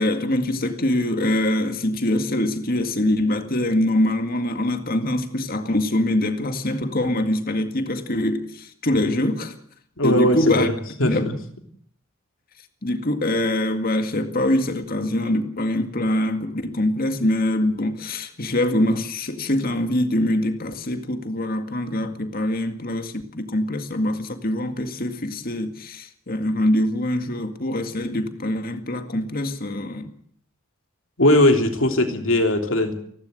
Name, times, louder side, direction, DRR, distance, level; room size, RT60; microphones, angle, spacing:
voice 1, 0.0-9.6 10.0-10.7 11.0-11.4 12.8-30.1, left 1 dB, 45° left, 2.0 m, -24 dB
voice 2, 10.0-10.7 11.0-11.3 31.2-32.9, left 1 dB, 70° left, 3.3 m, -19 dB
29.5 x 12.0 x 7.8 m
head